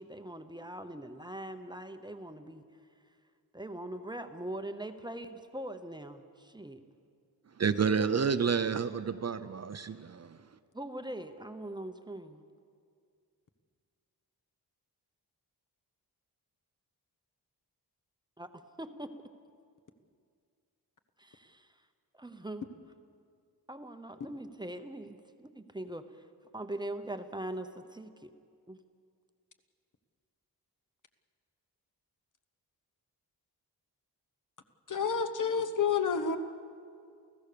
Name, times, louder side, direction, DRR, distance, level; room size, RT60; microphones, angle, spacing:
voice 1, 0.0-2.6 3.5-6.8 10.7-12.4 18.4-19.2 21.2-21.7 22.2-22.7 23.7-26.2 26.5-28.3 28.7-28.8, right 1 dB, 10° right, 8 dB, 0.8 m, -42 dB
voice 2, 7.6-10.3, right 6 dB, 40° right, 11 dB, 0.6 m, -29 dB
voice 3, 34.9-36.4, left 6 dB, 50° left, 7 dB, 1.1 m, -29 dB
28.5 x 16.0 x 6.8 m, 2.3 s
wide cardioid pair, 180°, 39 cm